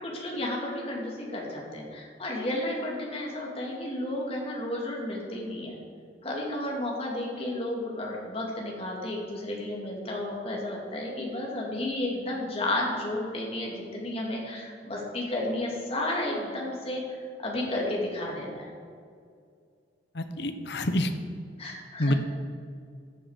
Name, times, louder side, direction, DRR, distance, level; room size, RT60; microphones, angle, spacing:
voice 1, 0.0-5.7 6.2-17.0 17.4-18.7 21.6-22.2, left 1 dB, 35° left, -2 dB, 2.5 m, -32 dB
voice 2, 20.1-21.1 22.0-22.1, left 1 dB, 65° left, 8 dB, 0.9 m, -27 dB
14.0 x 7.9 x 5.0 m, 2.2 s
head